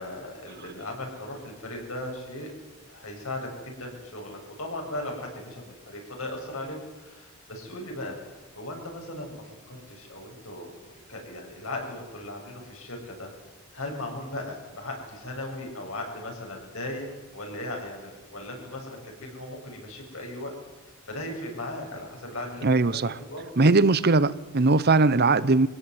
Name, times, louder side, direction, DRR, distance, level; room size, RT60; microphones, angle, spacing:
voice 1, 0.0-2.5 2.9-8.2 8.6-13.3 13.7-20.5 21.1-22.7 23.0-23.5, left 1 dB, 75° left, 1 dB, 7.6 m, -37 dB
voice 2, 22.6-23.1 23.6-25.7, right 3 dB, 50° right, 17 dB, 0.8 m, -20 dB
24.5 x 17.0 x 9.6 m, 1.1 s
head